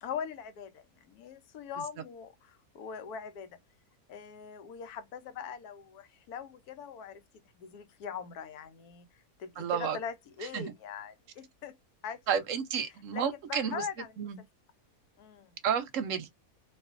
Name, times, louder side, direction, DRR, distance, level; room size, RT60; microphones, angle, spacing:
voice 1, 0.0-3.6 4.1-7.2 7.5-11.8 12.0-12.2 13.1-14.3 15.2-15.6, left 7 dB, 90° left, 1.1 m, -42 dB
voice 2, 9.6-10.0 10.5-10.6 12.3-13.8 14.2-14.4 15.6-16.3, right 7 dB, 70° right, 0.9 m, -31 dB
2.5 x 2.4 x 2.4 m
omnidirectional pair, 1.6 m